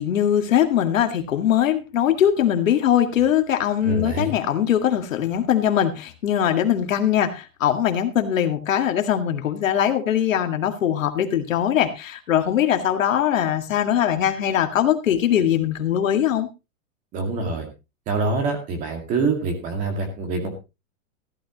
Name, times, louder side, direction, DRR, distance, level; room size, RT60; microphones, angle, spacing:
voice 1, 0.0-16.5, left 10 dB, 75° left, 6 dB, 2.1 m, -21 dB
voice 2, 3.9-4.3 17.1-17.7 18.1-20.6, right 3 dB, 20° right, 5 dB, 2.1 m, -25 dB
14.5 x 12.0 x 3.0 m, 0.27 s
supercardioid pair, 180°, 40 cm